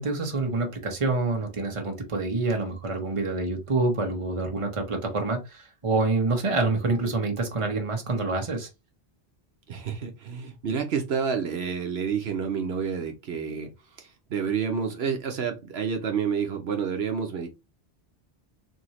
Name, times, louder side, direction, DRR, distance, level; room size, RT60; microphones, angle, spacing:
voice 1, 0.0-8.7, right 3 dB, 30° right, 1.0 m, -27 dB
voice 2, 9.7-13.7 14.0-17.5, right 6 dB, 70° right, 1.0 m, -29 dB
4.3 x 2.7 x 3.1 m
omnidirectional pair, 1.1 m